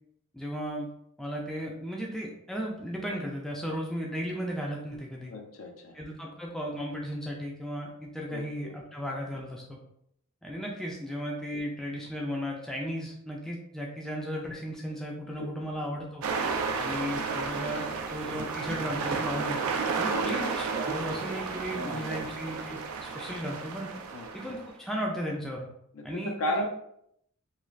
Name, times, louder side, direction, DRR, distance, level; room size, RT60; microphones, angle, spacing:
voice 1, 0.3-0.9 1.2-5.3 5.9-9.8 10.4-16.2 16.8-19.6 20.0-23.9 24.3-25.7 26.0-26.6, equal, ahead, -2 dB, 0.3 m, -35 dB
voice 2, 5.3-6.0 8.3-8.7 15.3-15.7 16.7-16.9 20.1-20.4 21.7-22.2 24.1-24.3 25.9-26.6, left 1 dB, 75° left, 3 dB, 0.5 m, -36 dB
sound 1, 16.2-24.7, right 4 dB, 80° right, 0.4 m, -32 dB
3.1 x 2.3 x 2.4 m, 0.73 s
head